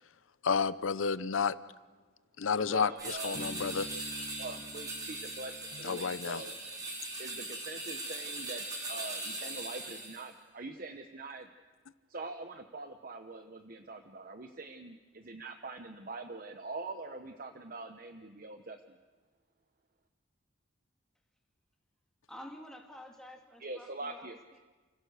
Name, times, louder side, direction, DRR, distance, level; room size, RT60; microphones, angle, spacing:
voice 1, 0.4-1.5 2.4-3.9 5.8-6.4, left 5 dB, 80° left, 16 dB, 0.7 m, -31 dB
voice 2, 2.6-3.5 4.4-6.5 7.2-11.5 12.1-19.0 23.6-24.6, right 3 dB, 45° right, 7 dB, 0.9 m, -44 dB
sound 1, 3.0-10.3, right 2 dB, 20° right, 3.3 m, -40 dB
Bass guitar, 3.3-6.8, left 1 dB, 25° left, 1.1 m, -48 dB
voice 3, 22.3-24.6, left 1 dB, 5° left, 1 dB, 2.2 m, -50 dB
30.0 x 16.5 x 6.6 m, 1.3 s
head